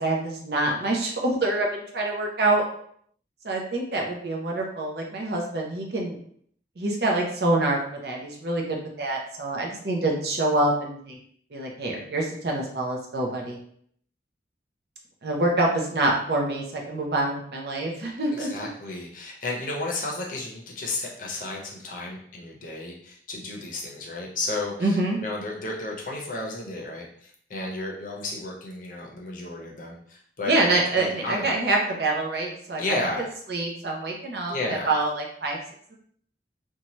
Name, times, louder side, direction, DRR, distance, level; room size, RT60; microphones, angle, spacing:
voice 1, 0.0-2.6 3.4-6.2 6.8-11.2 11.5-13.6 15.2-18.5 24.8-25.2 30.4-32.8 33.5-35.6, right 2 dB, 60° right, 0 dB, 0.6 m, -26 dB
voice 2, 18.3-30.5 31.0-31.5 32.8-33.3 34.5-35.0, left 2 dB, 45° left, -1 dB, 0.6 m, -33 dB
2.7 x 2.2 x 3.0 m, 0.63 s
head